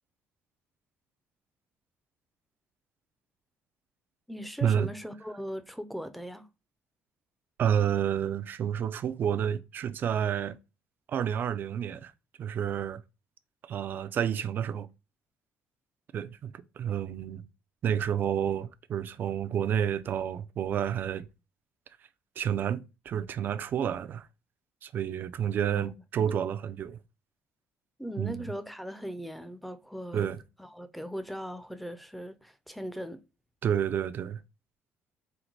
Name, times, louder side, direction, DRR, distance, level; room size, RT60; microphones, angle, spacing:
voice 1, 4.3-6.5 25.7-25.9 26.2-26.4 28.0-33.2, equal, ahead, 0.5 m, -39 dB
voice 2, 7.6-10.6 11.1-12.1 12.4-13.0 13.7-14.9 16.1-16.5 16.8-17.4 17.8-21.3 22.4-24.3 24.8-27.0 28.2-28.4 30.1-30.4 33.6-34.4, right 9 dB, 45° right, 0.4 m, -29 dB
4.5 x 2.2 x 3.9 m
cardioid pair, 125°, 5 cm